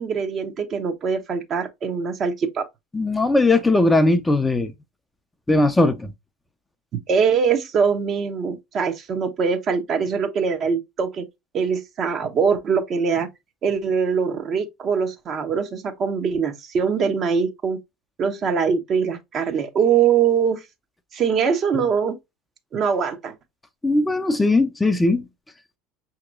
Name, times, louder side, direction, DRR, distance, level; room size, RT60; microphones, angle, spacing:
voice 1, 0.0-2.6 6.9-11.3 11.5-13.3 13.6-17.8 18.2-20.6 21.1-22.2 22.7-23.3, right 6 dB, 40° right, 0.9 m, -22 dB
voice 2, 2.9-4.7 5.5-6.1 23.8-25.2, left 2 dB, 10° left, 0.5 m, -19 dB
5.9 x 2.9 x 2.4 m
figure-of-eight pair, 75°, 0 cm